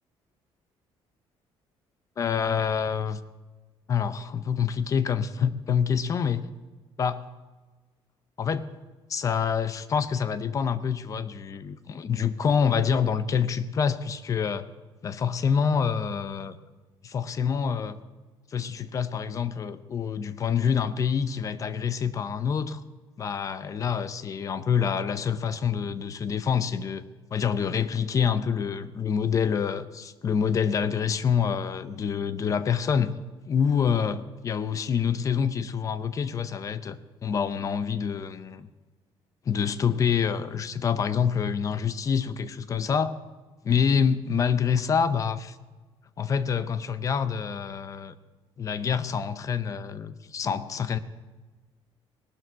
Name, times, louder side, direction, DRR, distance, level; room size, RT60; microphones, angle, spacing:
voice 1, 2.2-3.2 3.9-6.4 7.0-7.2 8.4-8.6 9.1-14.7 15.0-16.6 17.0-18.0 18.5-22.8 23.2-27.0 27.3-33.1 33.5-38.7 39.5-43.1 43.6-45.6 46.2-48.1 48.6-51.0, left 7 dB, 35° left, 14 dB, 0.6 m, -26 dB
18.5 x 12.0 x 4.7 m, 1.3 s
cardioid pair, 165°, 10 cm